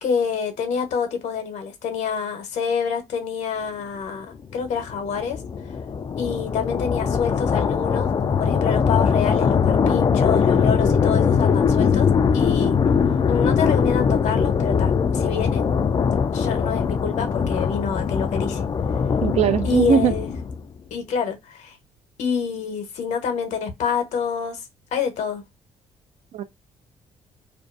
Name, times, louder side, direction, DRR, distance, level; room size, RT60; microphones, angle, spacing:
voice 1, 0.0-5.4 6.2-12.8 13.3-15.6 16.3-18.6 19.6-20.3 20.9-21.8 22.2-24.6 24.9-25.4, left 6 dB, 70° left, 0.9 m, -27 dB
sound 1, 4.5-20.7, left 6 dB, 35° left, 0.4 m, -21 dB
voice 2, 19.2-20.1 26.3-26.4, right 8 dB, 65° right, 0.5 m, -20 dB
2.5 x 2.3 x 2.5 m
supercardioid pair, 60°, 12 cm